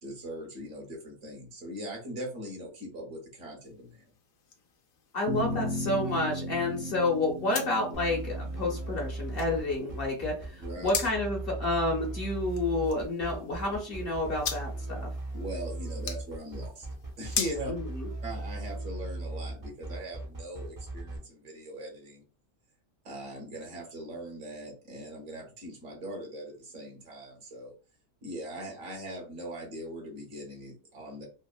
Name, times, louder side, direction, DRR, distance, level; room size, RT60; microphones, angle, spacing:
voice 1, 0.0-4.0 10.6-10.9 15.3-16.9 17.2-17.7 18.2-22.2 23.0-27.7 28.2-31.3, equal, 75° right, 0 dB, 1.4 m, -40 dB
sound 1, 3.6-18.8, left 6 dB, 85° left, 1.0 m, -42 dB
voice 2, 5.1-15.1 17.7-18.1, left 2 dB, 50° left, 0 dB, 0.9 m, -30 dB
sound 2, 5.3-11.8, equal, 50° right, 0.7 m, -37 dB
sound 3, 7.9-21.2, right 2 dB, 30° right, 0.4 m, -37 dB
3.5 x 2.1 x 2.3 m, 0.35 s
omnidirectional pair, 1.4 m